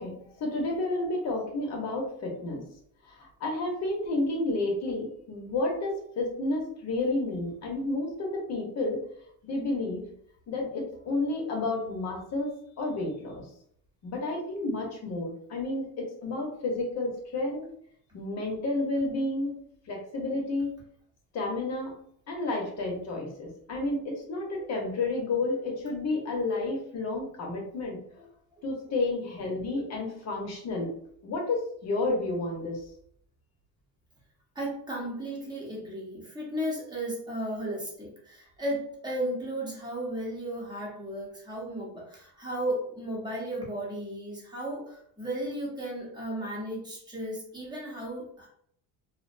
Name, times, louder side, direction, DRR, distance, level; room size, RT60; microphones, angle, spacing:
voice 1, 0.0-2.6 3.2-9.0 9.4-10.0 10.5-12.5 12.8-13.4 14.0-17.7 18.1-19.6 19.9-20.7 21.3-21.9 22.3-28.0 28.6-30.9 31.2-32.8, left 2 dB, 45° left, 0 dB, 0.9 m, -31 dB
voice 2, 34.6-48.5, right 1 dB, 10° right, -4 dB, 0.9 m, -35 dB
2.6 x 2.1 x 2.5 m, 0.65 s
cardioid pair, 130°, 38 cm